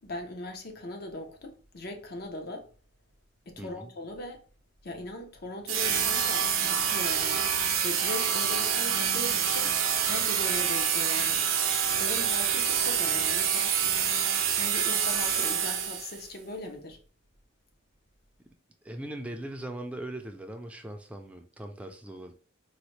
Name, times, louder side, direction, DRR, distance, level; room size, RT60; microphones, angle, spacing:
voice 1, 0.0-2.7 3.5-4.4 4.8-7.5 7.8-9.8 10.0-11.4 12.0-13.8 14.5-17.0, left 1 dB, 50° left, 0.7 m, -39 dB
voice 2, 3.6-3.9 18.8-22.3, right 1 dB, 5° right, 0.4 m, -40 dB
sound 1, 5.7-16.2, right 8 dB, 90° right, 0.6 m, -27 dB
4.0 x 2.1 x 3.1 m
head